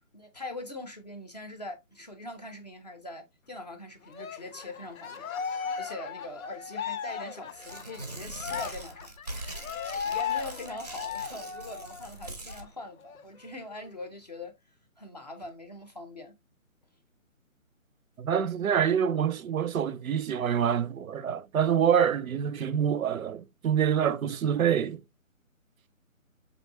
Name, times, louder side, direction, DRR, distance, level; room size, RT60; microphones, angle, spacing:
voice 1, 0.1-5.5 5.8-9.1 9.4-9.6 9.9-14.5 15.0-16.3, left 2 dB, 30° left, 0.5 m, -42 dB
Cheering, 4.1-12.1 12.5-12.6 13.0-14.0, left 7 dB, 80° left, 0.7 m, -36 dB
Tearing, 7.5-12.6, right 2 dB, 30° right, 0.5 m, -42 dB
voice 2, 18.2-25.0, right 8 dB, 85° right, 0.6 m, -26 dB
4.9 x 2.6 x 2.6 m
hypercardioid pair, 160°, 41 cm